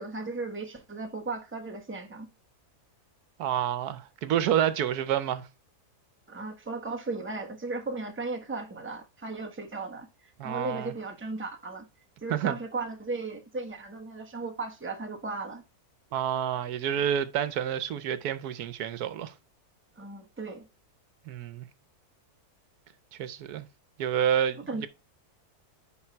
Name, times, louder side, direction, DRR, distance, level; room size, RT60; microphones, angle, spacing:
voice 1, 0.0-2.3 6.3-11.9 12.2-15.6 20.0-20.6 24.7-24.9, right 3 dB, 10° right, 1.0 m, -36 dB
voice 2, 3.4-5.5 10.4-10.9 12.3-12.6 16.1-19.3 21.3-21.7 23.2-23.7 24.0-24.9, right 9 dB, 80° right, 1.3 m, -28 dB
10.0 x 4.0 x 4.5 m
omnidirectional pair, 1.6 m